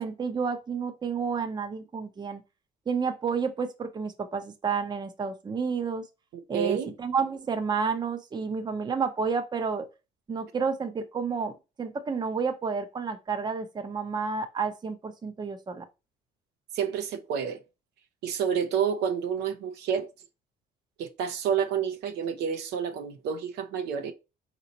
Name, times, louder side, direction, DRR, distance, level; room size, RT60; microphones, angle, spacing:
voice 1, 0.0-2.4 2.9-6.0 6.5-9.9 10.3-11.5 11.8-15.8, right 5 dB, 25° right, 0.7 m, -30 dB
voice 2, 6.5-6.9 16.7-17.6 18.2-20.1 21.0-24.1, right 7 dB, 80° right, 0.8 m, -29 dB
4.1 x 3.0 x 3.9 m
cardioid pair, 110°, 17 cm